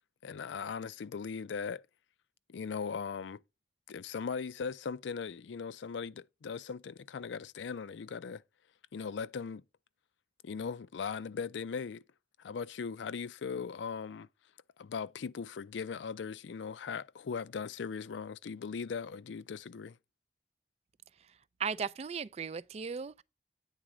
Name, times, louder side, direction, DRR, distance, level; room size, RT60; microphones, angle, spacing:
voice 1, 0.2-1.9 2.5-3.4 3.9-8.4 8.9-9.6 10.4-12.0 12.4-14.3 14.8-20.0, left 6 dB, 90° left, 0.4 m, -39 dB
voice 2, 21.6-23.2, right 6 dB, 35° right, 0.3 m, -36 dB
9.0 x 4.0 x 4.8 m
head